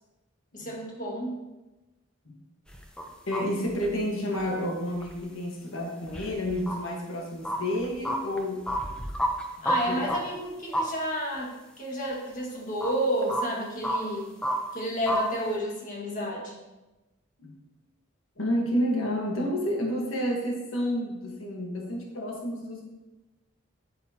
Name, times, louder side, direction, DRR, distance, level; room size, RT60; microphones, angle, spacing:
voice 1, 0.5-1.4 9.6-14.4 14.7-16.6, equal, 40° left, -3 dB, 1.9 m, -31 dB
sound 1, 2.7-3.0 3.3-3.4 3.7-4.0 4.3-4.4 4.9-5.1 6.1-6.8 7.4-9.8 10.1-10.2 10.7-10.9 11.3-11.4 12.8-12.9 13.2-14.0 14.4-14.5 15.1-15.2 15.6-15.7, equal, 5° left, 0.7 m, -29 dB
voice 2, 3.3-8.7 9.7-10.3 17.4-17.6 18.4-22.8, equal, 85° left, 0 dB, 1.5 m, -30 dB
8.8 x 8.4 x 2.9 m, 1.1 s
head